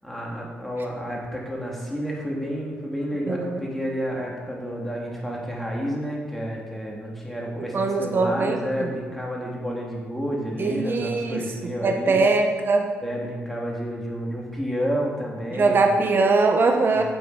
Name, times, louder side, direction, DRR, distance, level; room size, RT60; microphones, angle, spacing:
voice 1, 0.0-12.2 13.0-15.9 16.9-17.0, equal, 5° left, -3 dB, 2.8 m, -30 dB
voice 2, 3.3-3.6 7.7-8.9 10.6-12.9 15.5-17.0, right 3 dB, 50° right, 4 dB, 1.4 m, -22 dB
8.9 x 7.0 x 5.0 m, 1.5 s
cardioid pair, 70°, 5 cm